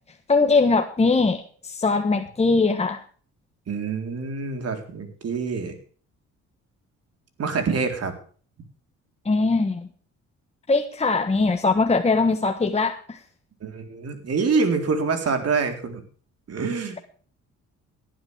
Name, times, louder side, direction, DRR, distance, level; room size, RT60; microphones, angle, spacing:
voice 1, 0.3-3.0 9.2-9.9 10.7-13.2, left 3 dB, 20° left, 6 dB, 1.4 m, -21 dB
voice 2, 3.7-5.8 7.4-8.1 13.6-16.0 16.5-17.0, right 4 dB, 55° right, 6 dB, 4.1 m, -26 dB
18.5 x 11.5 x 3.5 m, 0.43 s
cardioid pair, 90°, 30 cm